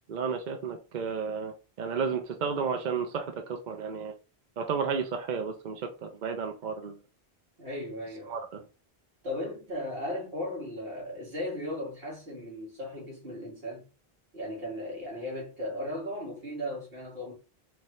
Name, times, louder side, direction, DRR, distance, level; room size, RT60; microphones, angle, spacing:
voice 1, 0.1-4.1 4.6-7.0 8.3-8.6, right 5 dB, 55° right, 0.7 m, -32 dB
voice 2, 7.6-8.4 9.2-13.9 14.3-17.3, left 1 dB, 70° right, 2.2 m, -36 dB
4.5 x 2.7 x 3.1 m
omnidirectional pair, 1.0 m